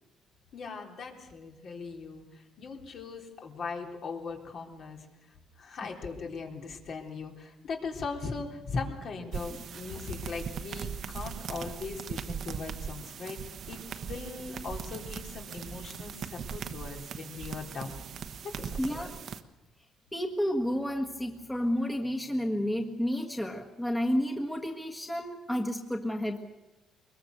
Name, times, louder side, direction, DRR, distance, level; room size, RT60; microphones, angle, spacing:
voice 1, 0.5-5.1 5.6-18.0 18.4-19.1, left 4 dB, 55° left, 2 dB, 3.6 m, -39 dB
sound 1, 9.3-19.4, right 7 dB, 55° right, 1.1 m, -39 dB
voice 2, 18.8-19.2 20.1-26.4, equal, 10° left, 2 dB, 1.7 m, -31 dB
23.5 x 21.5 x 6.7 m, 1.0 s
cardioid pair, 115°, 0 cm